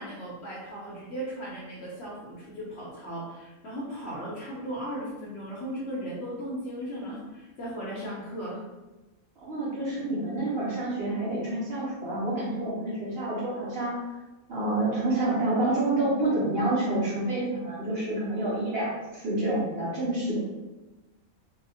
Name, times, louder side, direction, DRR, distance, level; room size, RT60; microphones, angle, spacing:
voice 1, 0.0-8.6, equal, 60° left, -5 dB, 0.7 m, -37 dB
voice 2, 9.4-14.0 14.5-20.4, right 2 dB, 60° right, -6 dB, 0.7 m, -28 dB
2.7 x 2.0 x 2.6 m, 1.1 s
omnidirectional pair, 1.5 m